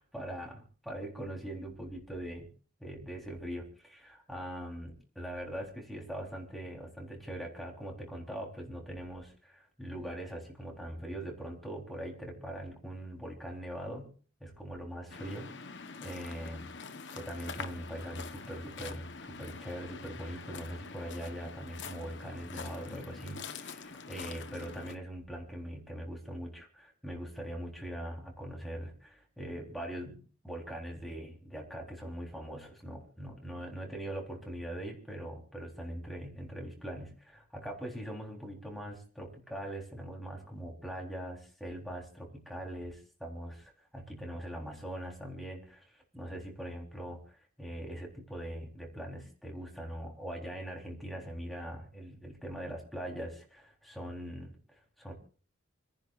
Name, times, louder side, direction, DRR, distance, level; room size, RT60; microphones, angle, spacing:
voice 1, 0.0-2.5 2.8-14.1 14.4-15.5 16.0-16.7 17.1-55.1, right 1 dB, ahead, -1 dB, 3.9 m, -42 dB
Waves surf, 15.1-25.0, left 4 dB, 60° left, 1.2 m, -45 dB
30.0 x 10.5 x 2.6 m, 0.41 s
head